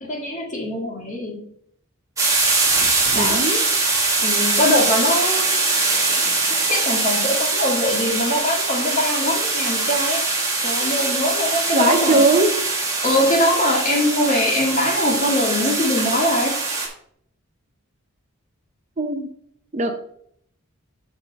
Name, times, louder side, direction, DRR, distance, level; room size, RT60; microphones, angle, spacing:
voice 1, 0.0-1.4 3.1-3.5 4.2-5.6 6.7-10.2 10.6-12.3 13.0-16.5, left 1 dB, 35° left, -1 dB, 1.9 m, -22 dB
sound 1, 2.2-16.9, right 3 dB, 15° right, 1.6 m, -22 dB
voice 2, 3.1-3.6 11.7-12.5 19.0-19.3 19.7-19.9, right 3 dB, 30° right, 4 dB, 0.7 m, -19 dB
7.1 x 3.7 x 6.2 m, 0.67 s
head